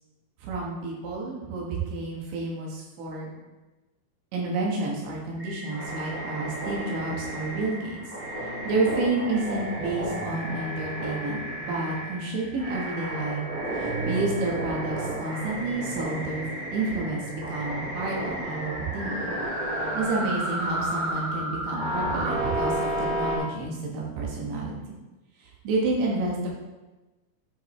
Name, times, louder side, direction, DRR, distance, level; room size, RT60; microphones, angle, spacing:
voice 1, 0.4-3.3 4.3-8.0 8.6-13.4 13.7-19.2 19.9-25.0 25.4-26.5, right 3 dB, 75° right, -3 dB, 3.5 m, -30 dB
sound 1, 5.4-23.4, right 1 dB, 25° right, 0.9 m, -32 dB
8.7 x 5.3 x 3.1 m, 1.1 s
omnidirectional pair, 5.3 m